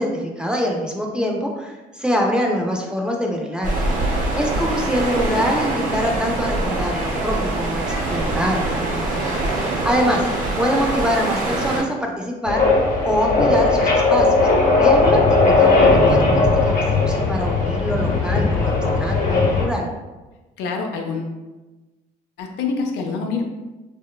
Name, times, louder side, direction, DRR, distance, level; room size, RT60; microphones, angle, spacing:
voice 1, 0.0-10.3 10.6-12.7 13.0-14.5 14.8-19.9, equal, 5° right, 0 dB, 0.3 m, -24 dB
sound 1, 3.6-11.8, right 2 dB, 50° right, 0.8 m, -24 dB
sound 2, 12.5-19.6, left 3 dB, 50° left, 0.7 m, -17 dB
voice 2, 20.6-21.4 22.4-23.4, left 4 dB, 85° left, 3 dB, 0.4 m, -26 dB
2.9 x 2.1 x 2.2 m, 1.1 s
cardioid pair, 110°, 17 cm